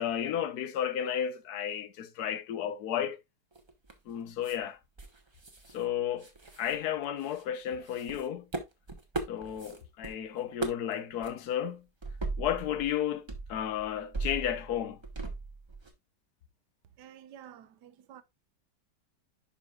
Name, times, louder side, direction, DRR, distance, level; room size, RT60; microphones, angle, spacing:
voice 1, 0.0-3.2 4.1-4.8 5.7-6.3 6.6-8.5 9.3-11.8 12.4-15.0, left 10 dB, 65° left, 1.3 m, -33 dB
sound 1, 3.5-4.1 4.4-4.6 5.0-5.8 6.1-7.4 7.8-10.1 10.4-10.9 11.2-11.3 12.0-13.0 13.3-15.9, right 3 dB, 20° right, 0.8 m, -38 dB
voice 2, 17.0-18.2, right 10 dB, 75° right, 1.4 m, -51 dB
11.0 x 4.9 x 2.4 m
omnidirectional pair, 1.9 m